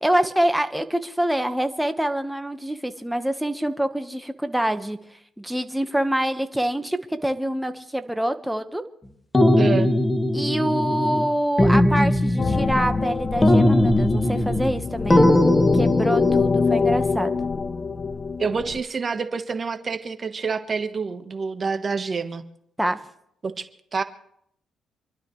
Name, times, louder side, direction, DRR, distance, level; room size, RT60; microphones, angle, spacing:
voice 1, 0.0-5.0 5.4-8.8 10.3-15.4 15.7-17.4 22.8-23.0, right 1 dB, 5° right, 8 dB, 1.3 m, -25 dB
sound 1, 9.3-11.3 11.6-13.1 13.4-14.8 15.1-16.5, left 1 dB, 15° left, 1.5 m, -19 dB
voice 2, 9.6-9.9 18.4-22.4 23.4-23.7 23.9-24.0, right 5 dB, 40° right, 8 dB, 1.3 m, -27 dB
sound 2, 12.4-18.8, left 5 dB, 40° left, 0.5 m, -24 dB
27.0 x 12.0 x 3.2 m, 0.73 s
cardioid pair, 90°, 0 cm